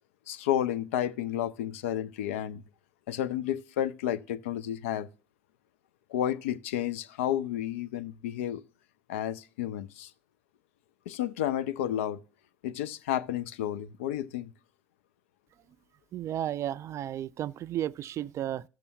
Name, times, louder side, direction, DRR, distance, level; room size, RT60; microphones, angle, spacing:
voice 1, 0.3-2.6 3.1-5.1 6.1-8.6 9.1-10.1 11.1-12.2 12.6-14.5, left 11 dB, 70° left, 0.4 m, -31 dB
voice 2, 16.1-18.6, right 11 dB, 40° right, 0.3 m, -33 dB
14.0 x 6.8 x 2.7 m
figure-of-eight pair, 65°, 7 cm